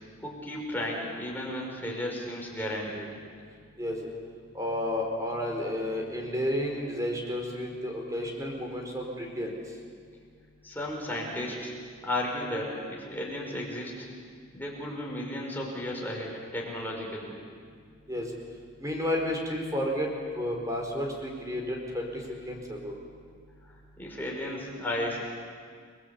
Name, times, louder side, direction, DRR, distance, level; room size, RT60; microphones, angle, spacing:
voice 1, 0.2-3.1 10.6-11.7 12.0-14.1 14.5-17.3 23.6-25.2, left 1 dB, 10° left, -2 dB, 5.3 m, -34 dB
voice 2, 4.5-9.6 18.1-18.3 18.8-22.9, left 1 dB, 15° right, 1 dB, 4.7 m, -31 dB
30.0 x 21.5 x 8.4 m, 2.1 s
head